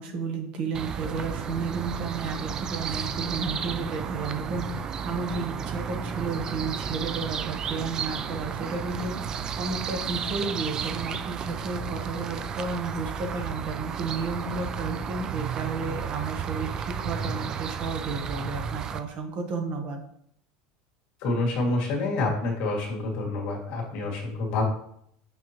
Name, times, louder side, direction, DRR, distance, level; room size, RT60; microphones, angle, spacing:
voice 1, 0.0-20.0, right 4 dB, 40° right, 4 dB, 1.0 m, -32 dB
sound 1, 0.7-19.0, right 7 dB, 20° right, 0.3 m, -33 dB
voice 2, 21.2-24.6, left 2 dB, 45° left, -1 dB, 2.2 m, -27 dB
6.7 x 6.3 x 3.0 m, 0.70 s
cardioid pair, 175°, 3 cm